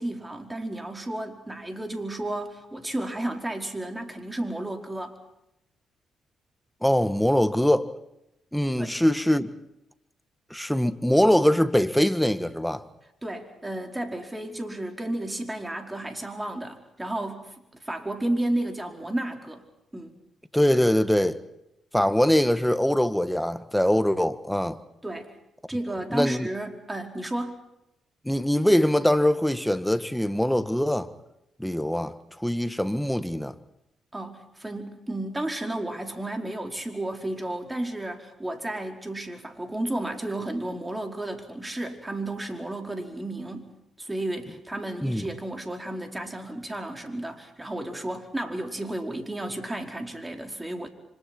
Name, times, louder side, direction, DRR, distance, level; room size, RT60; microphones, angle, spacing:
voice 1, 0.0-5.1 8.8-9.0 13.2-17.5 17.8-19.6 19.9-20.1 25.0-25.3 25.7-27.7 34.1-43.7 44.0-50.9, right 1 dB, 15° right, 4.7 m, -32 dB
voice 2, 6.8-7.9 8.5-9.5 10.5-12.8 20.5-21.4 21.9-24.8 26.1-26.5 28.2-31.1 31.6-33.5 45.0-45.3, equal, 5° left, 1.6 m, -23 dB
29.5 x 25.5 x 4.5 m
hypercardioid pair, 45°, 0 cm